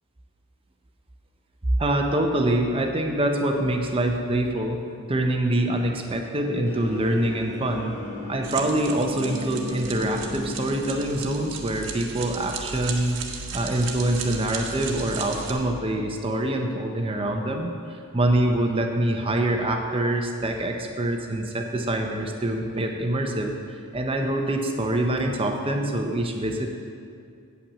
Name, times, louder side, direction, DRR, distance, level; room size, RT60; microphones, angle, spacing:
voice 1, 1.8-4.8 5.1-7.9 8.3-13.2 13.5-23.6 23.9-26.7, right 1 dB, 25° right, 3 dB, 0.6 m, -25 dB
sound 1, 6.7-13.2, left 2 dB, 75° left, 2.7 m, -37 dB
sound 2, 8.4-15.5, right 5 dB, 60° right, 1.0 m, -36 dB
8.6 x 5.8 x 7.5 m, 2.4 s
head